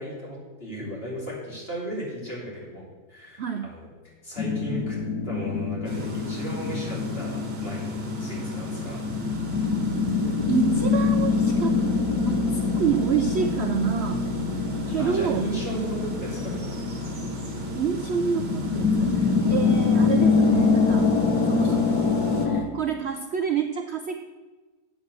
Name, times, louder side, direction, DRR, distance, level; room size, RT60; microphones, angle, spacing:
voice 1, 0.0-3.9 4.2-5.0 5.2-9.0 15.0-16.8, equal, 35° left, -5 dB, 3.6 m, -36 dB
voice 2, 3.4-3.7 10.5-11.7 12.2-14.3 14.9-15.5 17.7-21.1 21.5-21.9 22.4-24.1, right 7 dB, 65° right, 6 dB, 0.6 m, -28 dB
sound 1, 4.4-22.6, left 4 dB, 75° left, 1.4 m, -25 dB
sound 2, 5.8-22.5, right 2 dB, 40° right, 1.7 m, -37 dB
8.5 x 7.5 x 6.5 m, 1.3 s
omnidirectional pair, 1.6 m